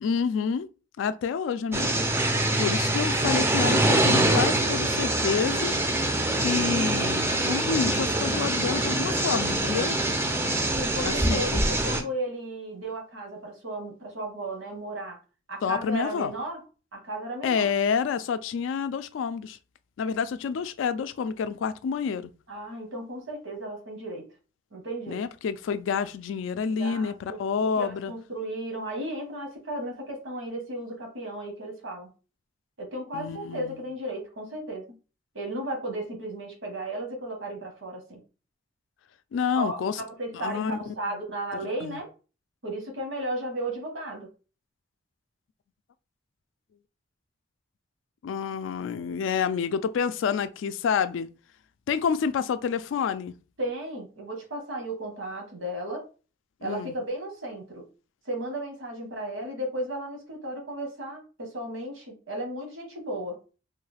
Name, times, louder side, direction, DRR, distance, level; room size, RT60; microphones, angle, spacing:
voice 1, 0.0-0.7 1.0-2.1 2.6-5.8 6.4-10.0 11.0-11.6 15.6-16.3 17.4-19.6 20.0-22.3 25.1-28.1 33.1-33.8 39.3-40.0 40.3-40.9 41.8-42.0 48.2-51.3 51.9-53.3 56.6-56.9, left 6 dB, 80° left, 0.3 m, -28 dB
sound 1, 1.7-12.0, right 1 dB, 15° right, 0.3 m, -24 dB
voice 2, 10.8-15.2 15.5-16.6 16.9-17.7 22.5-24.3 24.7-25.2 26.7-32.1 32.8-34.9 35.3-38.2 39.5-42.1 42.6-44.3 53.6-56.0 56.6-57.9 58.2-63.4, right 1 dB, 85° right, 1.1 m, -35 dB
3.2 x 2.3 x 3.2 m
head